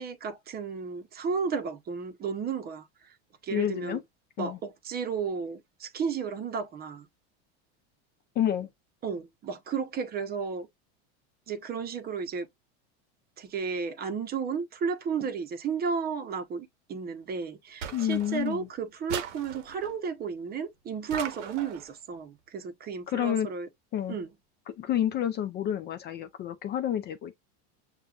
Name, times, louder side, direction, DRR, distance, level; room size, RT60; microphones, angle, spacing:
voice 1, 0.0-3.2 3.4-4.0 4.4-7.1 9.0-10.7 11.5-12.5 13.4-23.7 24.1-24.3, right 6 dB, 25° right, 0.7 m, -33 dB
voice 2, 3.5-4.0 4.4-4.6 8.4-8.7 17.9-18.7 23.1-23.5 23.9-24.2 24.8-27.3, left 10 dB, 30° left, 0.4 m, -29 dB
sound 1, 17.8-18.6 19.1-20.0 21.1-21.9, right 9 dB, 85° right, 0.9 m, -39 dB
6.6 x 2.3 x 2.4 m
supercardioid pair, 135°, 35 cm